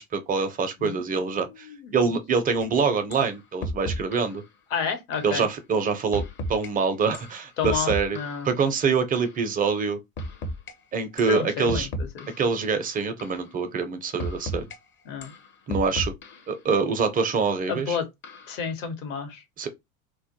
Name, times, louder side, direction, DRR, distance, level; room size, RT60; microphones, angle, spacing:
voice 1, 0.0-1.7 1.9-4.4 5.2-6.2 6.5-8.2 8.4-10.0 10.9-11.9 12.4-14.7 15.7-16.1 16.5-18.0 19.6-19.7, right 5 dB, 20° right, 0.4 m, -25 dB
voice 2, 0.8-1.1 1.5-1.9 4.7-5.5 7.6-8.5 11.3-11.8 12.1-12.3 15.1-15.3 17.7-18.1 18.5-19.4, left 7 dB, 65° left, 1.0 m, -30 dB
sound 1, 2.6-2.7 3.1-3.3 3.6-4.4 5.1-5.3 6.1-6.7 7.1-8.5 9.2-9.3 10.2-10.7 11.2-11.4 11.7-12.5 13.2-13.4 14.2-14.8 15.2-16.5 17.2-17.4 18.2-18.6, equal, 30° left, 0.5 m, -34 dB
2.2 x 2.1 x 2.8 m
hypercardioid pair, 85°, 42 cm